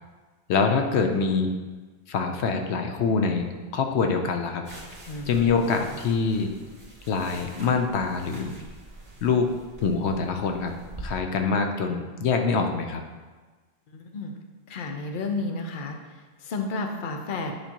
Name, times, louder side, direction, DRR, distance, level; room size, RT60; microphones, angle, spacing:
voice 1, 0.5-1.5 2.1-3.4 3.7-4.7 5.3-6.5 7.1-8.6 9.2-9.5 9.8-10.7 11.0-13.0, left 5 dB, 90° left, 5 dB, 1.0 m, -24 dB
sound 1, 4.6-11.1, right 2 dB, 15° right, 1.9 m, -44 dB
voice 2, 5.1-5.4 13.9-14.3 14.7-17.5, left 3 dB, 55° left, 3 dB, 0.9 m, -32 dB
9.6 x 5.1 x 2.9 m, 1.3 s
omnidirectional pair, 1.1 m